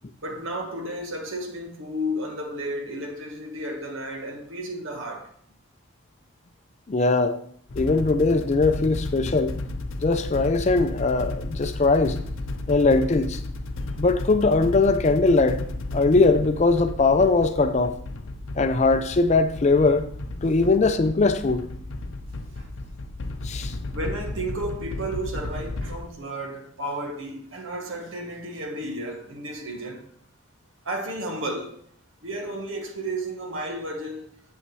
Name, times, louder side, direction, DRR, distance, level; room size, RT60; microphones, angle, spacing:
voice 1, 0.2-5.3 22.6-22.7 23.9-30.1 30.8-31.8 32.2-34.3, right 1 dB, 70° right, 1.3 m, -32 dB
voice 2, 6.9-7.4 7.8-9.5 10.0-12.2 12.7-13.4 14.0-15.6 15.9-18.0 18.6-20.1 20.4-21.7 23.4-23.7, left 3 dB, 35° left, 0.4 m, -20 dB
sound 1, 7.7-26.0, left 2 dB, 75° left, 0.6 m, -33 dB
8.3 x 7.1 x 3.1 m
head